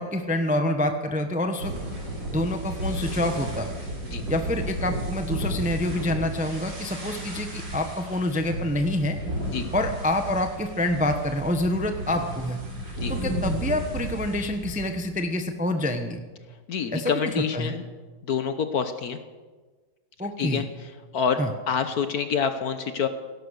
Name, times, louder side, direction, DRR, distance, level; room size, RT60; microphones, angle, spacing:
voice 1, 0.0-1.7 2.3-3.7 4.3-9.2 9.7-12.6 13.1-16.2 16.9-17.8 20.2-20.6 21.4-21.5, left 1 dB, 5° right, 6 dB, 0.6 m, -27 dB
sound 1, 1.6-15.0, right 1 dB, 65° right, 4.0 m, -33 dB
voice 2, 16.7-17.8 18.3-19.2 20.4-20.7 21.1-21.4 21.7-23.1, left 7 dB, 60° left, 9 dB, 1.2 m, -26 dB
17.0 x 11.5 x 6.6 m, 1.3 s
omnidirectional pair, 2.1 m